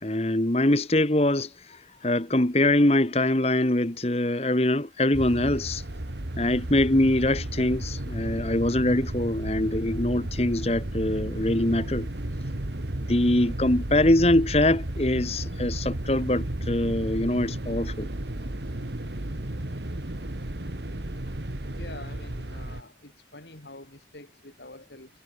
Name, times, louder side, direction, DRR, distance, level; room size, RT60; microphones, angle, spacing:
voice 1, 0.0-5.8 6.4-12.1 13.1-18.1, left 1 dB, 35° left, 1.5 m, -23 dB
sound 1, 5.1-22.8, right 1 dB, 80° right, 2.1 m, -33 dB
voice 2, 21.8-25.1, left 2 dB, 75° left, 5.6 m, -46 dB
head